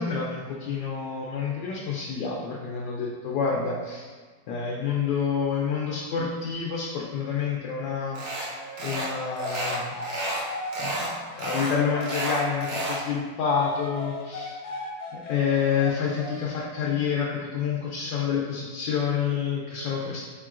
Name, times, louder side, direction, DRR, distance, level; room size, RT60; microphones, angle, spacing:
voice 1, 0.0-4.1 4.5-9.9 10.8-14.6 15.1-20.3, left 6 dB, 80° left, -3 dB, 1.2 m, -28 dB
sound 1, 8.2-8.5 8.8-9.1 9.4-10.4 10.7-11.1 11.4-13.0, right 1 dB, 85° right, 1.6 m, -31 dB
sound 2, 8.5-13.1 13.5-16.6, left 2 dB, 50° left, 0.9 m, -38 dB
4.8 x 3.7 x 2.4 m, 1.5 s
omnidirectional pair, 2.0 m